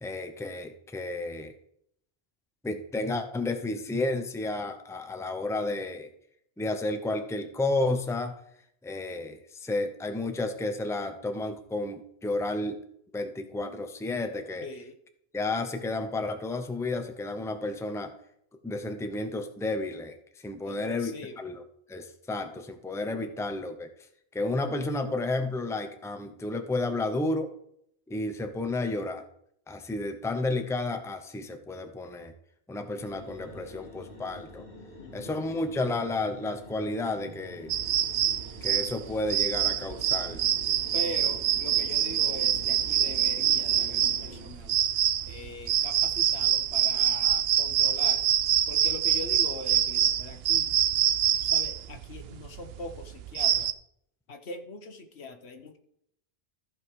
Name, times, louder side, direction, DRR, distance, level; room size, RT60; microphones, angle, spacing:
voice 1, 0.0-1.5 2.6-6.1 6.6-8.3 8.8-12.8 13.1-14.7 15.3-18.1 18.6-21.6 21.9-23.9 24.3-27.5 28.1-29.2 29.7-32.3 32.7-34.6 35.1-37.7 38.6-40.4, left 2 dB, 5° left, 8 dB, 0.7 m, -32 dB
voice 2, 14.6-14.9 20.6-21.4 35.0-35.3 40.9-44.8 45.3-48.2 48.7-50.8 51.4-53.7 54.3-55.8, left 2 dB, 75° left, 6 dB, 1.4 m, -42 dB
sound 1, 33.0-44.5, left 1 dB, 55° left, 1.8 m, -47 dB
sound 2, 37.7-53.7, right 10 dB, 70° right, 0.8 m, -25 dB
14.0 x 5.4 x 4.8 m, 0.71 s
omnidirectional pair, 1.1 m